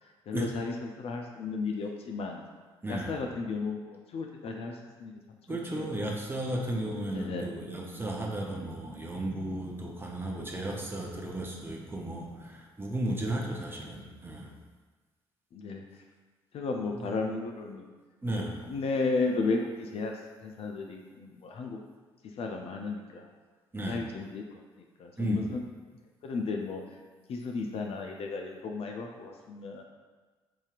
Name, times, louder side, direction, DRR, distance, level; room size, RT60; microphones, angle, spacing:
voice 1, 0.3-2.4 2.9-5.1 5.5-5.9 7.1-7.5 15.5-15.8 16.5-17.8 18.7-20.1 20.4-21.8 22.4-23.3 23.9-24.4 25.0-25.6 26.2-26.8 27.3-29.8, left 3 dB, 50° left, 2 dB, 0.4 m, -34 dB
voice 2, 2.8-3.1 5.5-14.5 17.0-17.1 18.2-18.6 23.7-24.0 25.2-25.5, right 1 dB, 15° right, -1 dB, 0.8 m, -34 dB
4.8 x 2.7 x 2.4 m, 1.4 s
hypercardioid pair, 45°, 13 cm